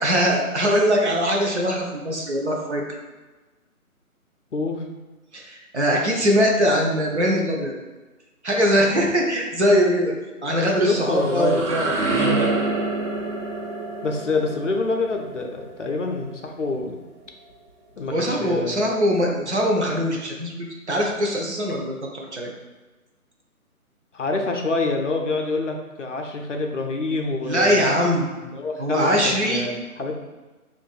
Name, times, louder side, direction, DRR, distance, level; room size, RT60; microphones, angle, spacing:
voice 1, 0.0-3.0 5.3-7.7 8.4-10.1 10.4-11.9 18.1-22.5 27.5-28.2 28.8-29.6, equal, 50° right, -1 dB, 0.7 m, -22 dB
voice 2, 4.5-4.8 10.8-11.7 14.0-17.0 18.0-18.9 24.1-27.9 28.4-30.1, left 3 dB, 55° left, 2 dB, 0.5 m, -26 dB
sound 1, 10.8-16.6, right 2 dB, 80° right, 1.1 m, -27 dB
3.2 x 2.6 x 3.8 m, 1.2 s
figure-of-eight pair, 165°, 44 cm